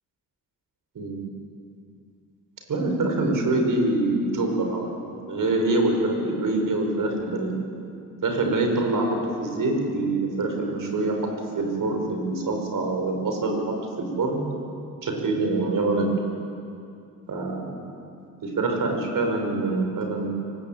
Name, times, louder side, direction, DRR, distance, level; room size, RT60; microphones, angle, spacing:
voice 1, 2.7-7.5 8.2-14.4 15.0-16.1 17.3-17.8 18.4-20.3, right 2 dB, 65° right, 3 dB, 5.8 m, -25 dB
23.5 x 21.0 x 9.0 m, 2.5 s
cardioid pair, 80°, 35 cm